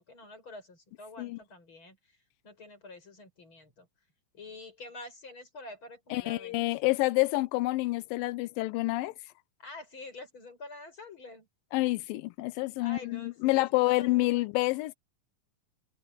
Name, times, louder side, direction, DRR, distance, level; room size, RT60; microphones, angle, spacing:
voice 1, 0.0-2.2 2.4-3.9 4.3-6.5 9.6-11.5 12.8-14.5, left 2 dB, 35° left, 7.9 m, -47 dB
voice 2, 6.1-9.1 11.7-14.9, left 21 dB, 85° left, 2.4 m, -28 dB
omnidirectional pair, 4.0 m